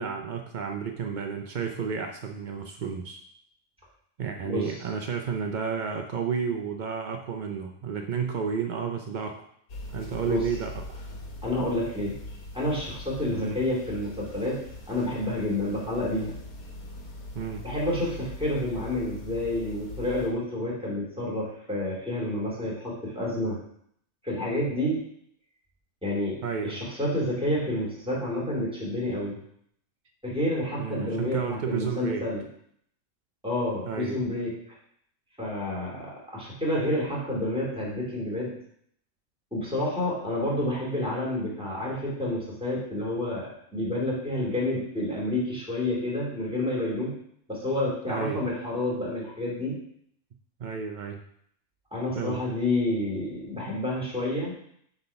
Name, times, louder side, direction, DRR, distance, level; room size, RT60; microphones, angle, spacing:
voice 1, 0.0-3.2 4.2-9.4 9.9-11.0 13.3-13.6 17.3-17.6 26.4-26.7 30.8-32.2 33.9-34.2 48.1-48.4 50.6-51.2 52.1-52.4, right 6 dB, 75° right, 4 dB, 0.4 m, -31 dB
voice 2, 4.4-4.8 10.3-10.5 11.4-12.1 12.5-14.6 14.9-16.3 17.6-23.6 24.2-25.0 26.0-29.4 30.2-32.4 33.4-34.5 35.4-38.5 39.5-47.1 47.5-49.8 51.9-54.5, left 1 dB, 5° right, -5 dB, 2.6 m, -29 dB
sound 1, 9.7-20.3, left 1 dB, 90° left, 1.7 m, -42 dB
7.8 x 3.5 x 5.6 m, 0.68 s
omnidirectional pair, 1.5 m